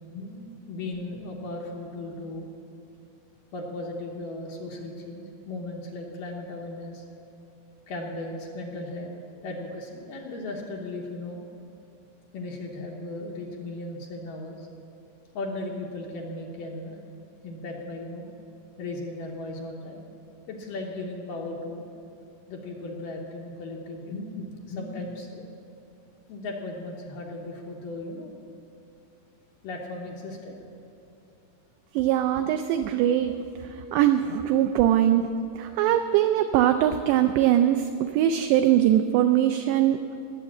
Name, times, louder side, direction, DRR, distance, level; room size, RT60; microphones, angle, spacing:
voice 1, 0.1-2.5 3.5-7.0 7.9-9.1 9.4-11.4 12.3-14.7 15.3-17.0 17.4-18.3 18.8-20.1 20.5-21.8 22.5-25.4 26.3-28.3 29.6-30.6, left 2 dB, 75° left, -1 dB, 2.0 m, -36 dB
voice 2, 31.9-35.3 35.6-40.2, right 11 dB, 90° right, 8 dB, 2.4 m, -22 dB
18.5 x 7.2 x 8.5 m, 2.7 s
omnidirectional pair, 5.4 m